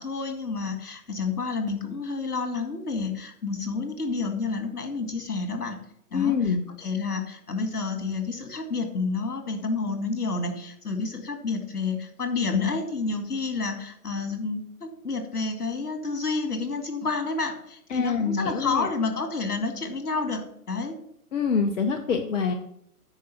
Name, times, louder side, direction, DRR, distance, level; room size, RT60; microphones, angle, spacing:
voice 1, 0.0-5.8 6.1-21.0, left 4 dB, 75° left, 6 dB, 2.1 m, -29 dB
voice 2, 6.1-6.6 17.9-18.9 21.3-22.5, left 6 dB, 55° left, 5 dB, 1.0 m, -25 dB
9.3 x 5.0 x 5.8 m, 0.68 s
figure-of-eight pair, 120°, 45 cm